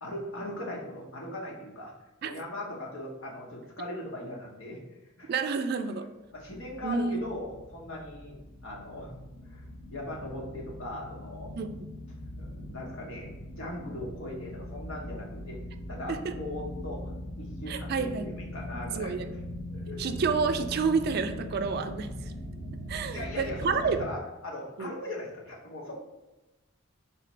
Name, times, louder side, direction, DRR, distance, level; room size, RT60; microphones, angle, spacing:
voice 1, 0.0-1.9 2.2-4.8 5.2-5.3 6.3-8.3 8.6-9.2 9.4-11.5 12.4-15.6 15.9-17.1 17.4-19.1 19.7-20.1 23.1-26.0, left 1 dB, 85° left, -2 dB, 1.0 m, -39 dB
voice 2, 5.3-6.1 6.8-7.2 11.6-11.7 16.1-16.3 17.7-18.3 18.9-19.3 20.0-22.3 22.9-24.0 24.8-24.9, right 5 dB, 50° right, 8 dB, 0.3 m, -29 dB
sound 1, 6.4-24.1, left 1 dB, 50° left, 0.6 m, -41 dB
3.2 x 3.0 x 4.3 m, 1.0 s
head